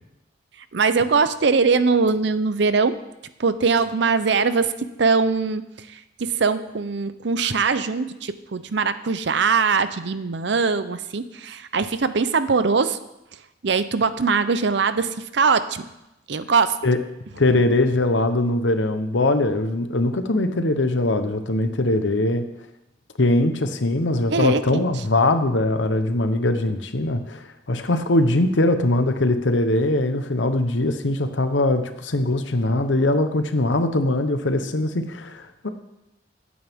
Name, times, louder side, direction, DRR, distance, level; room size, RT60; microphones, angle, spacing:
voice 1, 0.7-3.0 3.4-4.7 5.0-5.6 5.9-13.0 13.6-15.8 16.3-16.8 24.3-24.9, right 4 dB, 65° right, 13 dB, 0.6 m, -21 dB
voice 2, 17.3-22.4 23.2-35.7, left 2 dB, 75° left, 8 dB, 1.0 m, -21 dB
16.0 x 8.7 x 3.6 m, 0.92 s
head